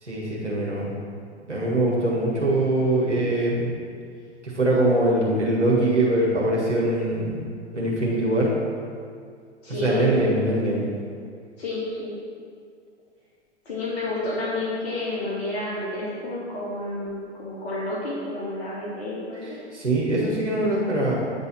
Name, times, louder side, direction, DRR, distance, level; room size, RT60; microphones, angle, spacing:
voice 1, 0.0-0.9 1.5-3.7 4.4-7.4 7.7-8.5 9.8-10.8 19.7-21.2, right 1 dB, 85° right, -5 dB, 1.7 m, -22 dB
voice 2, 9.6-10.2 11.6-12.1 13.7-19.4, left 2 dB, 60° left, -7 dB, 2.2 m, -30 dB
9.3 x 4.1 x 5.9 m, 2.2 s
figure-of-eight pair, 105°, 35 cm